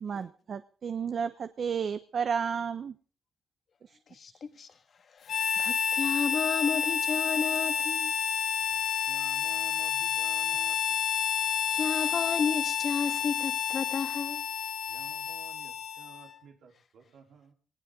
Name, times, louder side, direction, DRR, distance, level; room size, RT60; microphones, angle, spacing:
voice 1, 0.0-2.9 3.8-4.0 4.3-4.4, right 6 dB, 50° right, 0.9 m, -32 dB
voice 2, 4.1-4.7 5.1-8.2 11.7-14.4, left 5 dB, 50° left, 1.7 m, -32 dB
Harmonica, 5.3-16.3, left 8 dB, 70° left, 3.8 m, -30 dB
voice 3, 9.1-10.8 14.9-17.5, right 7 dB, 75° right, 3.8 m, -53 dB
19.5 x 19.5 x 3.8 m
cardioid pair, 100°, 0 cm